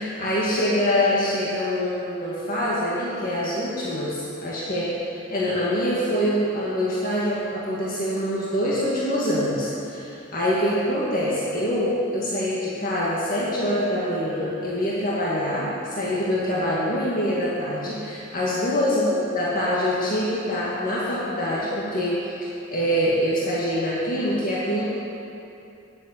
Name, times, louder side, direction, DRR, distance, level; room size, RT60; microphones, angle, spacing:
voice 1, 0.0-22.2 22.7-24.9, equal, 45° left, -8 dB, 2.0 m, -25 dB
11.0 x 7.5 x 8.0 m, 2.7 s
head